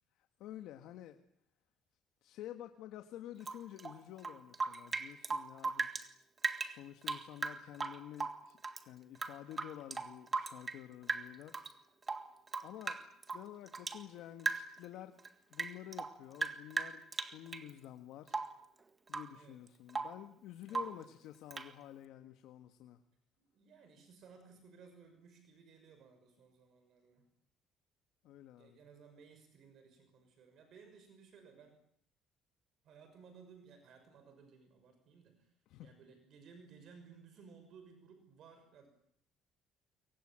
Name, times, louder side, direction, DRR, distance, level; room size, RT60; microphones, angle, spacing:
voice 1, 0.2-1.2 2.2-5.9 6.6-8.6 8.9-11.7 12.6-13.0 13.3-15.2 15.5-18.4 19.1-23.0 28.2-28.8 35.7-35.9, left 12 dB, 75° left, 7 dB, 1.6 m, -50 dB
Rain / Drip, 3.4-6.1 6.4-8.8 9.1-10.8 11.1-11.7 12.0-14.0 14.4-14.9 15.2-17.7 18.3-18.6 19.1-19.4 19.7-20.2 20.7-21.0 21.5-21.7, right 4 dB, 20° right, 1.8 m, -39 dB
voice 2, 20.7-21.2 23.4-27.2 28.6-31.8 32.8-35.5 35.8-38.9, right 5 dB, 55° right, 7 dB, 6.1 m, -59 dB
27.0 x 24.0 x 8.9 m, 0.66 s
cardioid pair, 155°, 0 cm